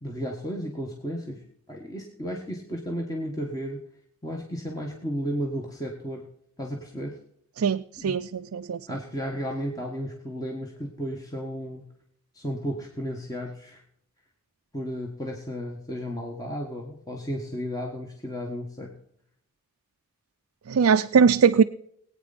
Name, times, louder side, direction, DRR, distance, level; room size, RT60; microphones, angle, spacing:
voice 1, 0.0-3.8 4.2-6.3 6.6-7.2 8.0-8.2 8.9-11.9 12.3-13.8 14.7-19.0, equal, 15° left, 0 dB, 1.6 m, -33 dB
voice 2, 7.6-8.8 20.7-21.6, right 6 dB, 80° right, 7 dB, 0.4 m, -21 dB
21.5 x 9.0 x 4.2 m, 0.69 s
head